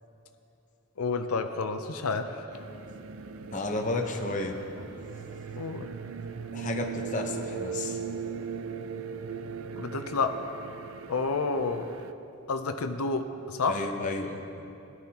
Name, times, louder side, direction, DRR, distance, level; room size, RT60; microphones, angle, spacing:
voice 1, 1.0-2.5 5.6-5.9 9.8-10.4 10.7-10.8 11.1-12.0 12.5-13.9, left 4 dB, 85° left, 7 dB, 0.6 m, -30 dB
sound 1, 2.5-12.1, right 6 dB, 70° right, 0.4 m, -38 dB
voice 2, 3.5-4.6 6.5-8.0 13.7-14.4, left 2 dB, 35° left, 3 dB, 0.9 m, -32 dB
16.5 x 11.5 x 2.9 m, 2.8 s
head